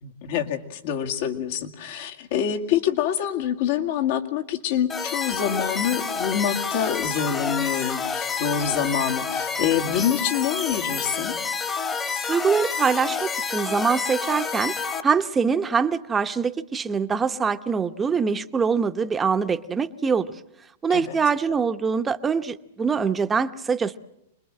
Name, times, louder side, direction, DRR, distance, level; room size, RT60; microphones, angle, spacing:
voice 1, 0.0-11.4 20.9-21.2, left 9 dB, 60° left, 4 dB, 2.1 m, -26 dB
sound 1, 4.9-15.0, left 5 dB, 20° left, 1.4 m, -29 dB
voice 2, 12.3-14.7 15.0-20.3 20.8-24.0, right 5 dB, 15° right, 10 dB, 0.9 m, -24 dB
26.0 x 21.0 x 7.7 m, 0.82 s
hypercardioid pair, 135°, 0 cm